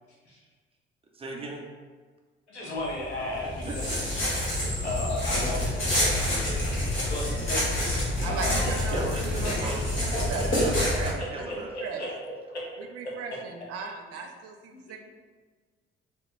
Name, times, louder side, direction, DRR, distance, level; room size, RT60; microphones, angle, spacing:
voice 1, 1.1-1.7 3.4-4.4 8.9-12.0, right 2 dB, 15° right, -1 dB, 0.7 m, -39 dB
voice 2, 2.5-3.5 3.7-4.0 4.6-8.0 8.3-8.6 9.4-9.8 10.9-11.2 11.7-12.6 14.1-14.2 14.7-15.0, left 1 dB, 85° left, -5 dB, 0.7 m, -35 dB
sound 1, 2.9-11.1, left 1 dB, 35° left, 1.5 m, -27 dB
voice 3, 8.2-9.7 10.2-12.0 12.8-15.0, right 5 dB, 50° right, 5 dB, 0.5 m, -37 dB
4.2 x 2.2 x 3.3 m, 1.4 s
figure-of-eight pair, 45°, 33 cm